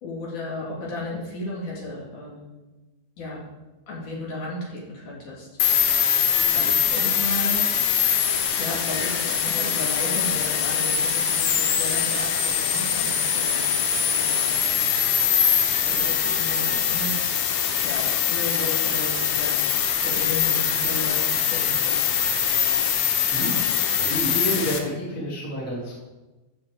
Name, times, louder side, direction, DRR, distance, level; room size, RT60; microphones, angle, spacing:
voice 1, 0.0-2.7 3.2-3.5 3.9-5.5 6.5-7.7 8.6-15.0 15.8-19.6 20.0-22.1, left 2 dB, 55° left, -4 dB, 3.1 m, -34 dB
sound 1, 5.6-24.8, left 8 dB, 85° left, 1.6 m, -23 dB
voice 2, 23.3-26.0, equal, 5° left, -5 dB, 1.6 m, -30 dB
14.5 x 6.4 x 3.6 m, 1.1 s
omnidirectional pair, 4.6 m